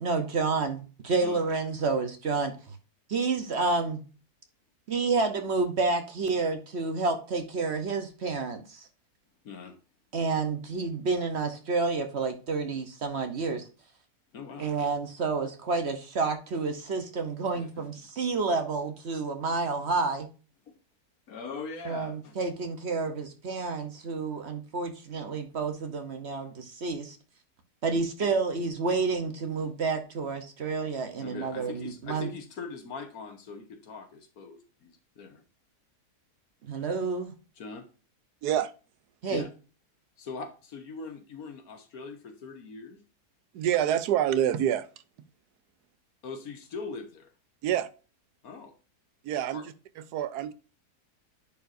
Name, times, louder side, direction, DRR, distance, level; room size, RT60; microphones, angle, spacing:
voice 1, 0.0-2.7 3.1-4.0 4.9-8.9 10.1-13.6 14.6-20.3 21.8-27.2 27.8-32.3 36.6-37.3 39.2-39.4, right 4 dB, 50° right, 1.0 m, -29 dB
voice 2, 9.4-9.8 14.3-14.7 17.5-17.8 20.7-20.8 21.3-22.4 27.9-28.1 31.2-35.4 37.6-37.8 39.3-39.5 40.2-43.0 46.2-47.3 48.4-48.7 49.5-49.6, left 4 dB, 65° left, 1.6 m, -41 dB
voice 3, 43.5-44.9 47.6-47.9 49.2-50.5, right 10 dB, 80° right, 1.1 m, -27 dB
10.0 x 4.6 x 2.6 m
omnidirectional pair, 1.7 m